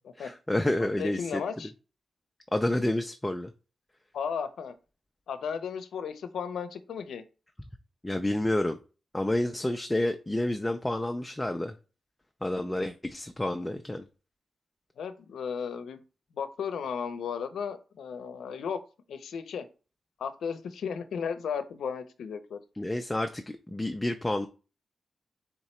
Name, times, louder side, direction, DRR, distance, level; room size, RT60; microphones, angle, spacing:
voice 1, 0.2-1.4 2.5-3.5 8.0-8.8 9.1-11.7 12.4-14.0 22.8-24.5, left 1 dB, 10° left, 0.4 m, -29 dB
voice 2, 1.0-1.7 4.1-4.7 5.3-7.2 15.0-16.0 16.3-18.8 19.1-19.7 20.2-22.6, left 6 dB, 85° left, 0.5 m, -34 dB
3.6 x 3.0 x 4.3 m
cardioid pair, 100°, 0 cm